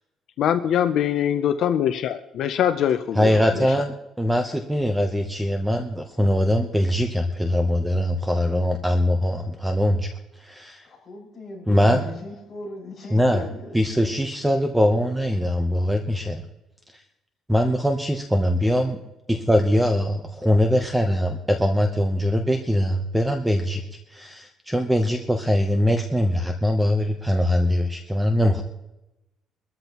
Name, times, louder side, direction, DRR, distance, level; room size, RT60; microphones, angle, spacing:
voice 1, 0.4-3.7, left 9 dB, 60° left, 0.6 m, -23 dB
voice 2, 3.2-10.1 10.4-10.9 11.7-12.0 13.1-13.4 13.7-16.4 16.9-17.0 17.5-19.0 19.3-23.8 24.1-28.6, equal, 5° right, 0.8 m, -22 dB
voice 3, 10.8-14.2, left 3 dB, 20° left, 6.0 m, -38 dB
22.0 x 13.5 x 3.0 m
cardioid pair, 155°, 0 cm